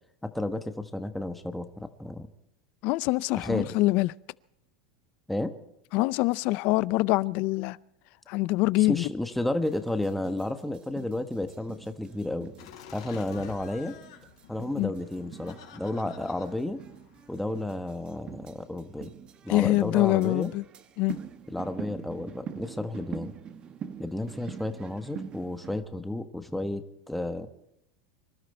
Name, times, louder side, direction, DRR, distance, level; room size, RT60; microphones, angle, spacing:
voice 1, 0.2-2.3 3.3-3.7 5.3-5.5 8.9-12.5 12.9-13.9 14.5-16.8 17.3-19.1 19.4-20.5 21.5-23.3 24.0-27.5, left 1 dB, 5° left, 1.3 m, -32 dB
voice 2, 2.8-4.1 5.9-7.8 8.3-9.1 14.8-14.9 19.5-20.6 21.0-21.1, left 20 dB, 55° left, 0.5 m, -24 dB
sound 1, 9.6-25.8, right 7 dB, 35° right, 1.2 m, -44 dB
Laughter, 12.6-17.7, left 9 dB, 80° left, 4.6 m, -50 dB
25.5 x 13.0 x 4.4 m
supercardioid pair, 120°, 3 cm